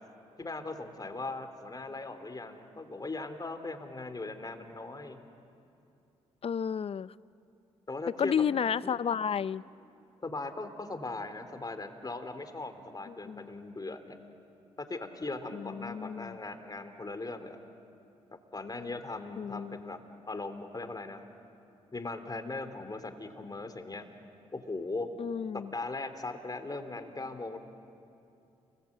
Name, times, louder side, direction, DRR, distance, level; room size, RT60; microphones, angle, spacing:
voice 1, 0.4-5.2 7.9-8.3 8.8-8.9 10.2-14.2 14.9-17.6 18.5-20.0 20.3-21.2 21.9-24.1 24.5-25.2 25.5-27.6, left 3 dB, 30° left, 8 dB, 3.4 m, -39 dB
voice 2, 6.4-7.1 8.2-9.6 13.1-13.5 15.5-16.4 19.4-19.8 25.2-25.7, left 7 dB, 45° left, 18 dB, 0.6 m, -32 dB
30.0 x 21.5 x 8.9 m, 2.6 s
hypercardioid pair, 45°, 13 cm